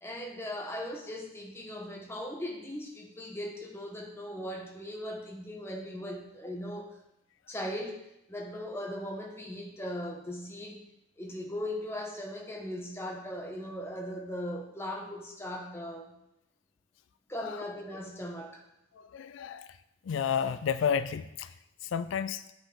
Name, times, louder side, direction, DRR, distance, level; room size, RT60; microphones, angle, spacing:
voice 1, 0.0-7.0 7.5-10.8 11.2-16.2 17.3-18.6, left 1 dB, 15° left, 1 dB, 1.2 m, -39 dB
voice 2, 19.1-19.6 20.1-21.5 21.9-22.4, left 7 dB, 80° left, 13 dB, 0.4 m, -30 dB
8.5 x 8.3 x 4.0 m, 0.82 s
head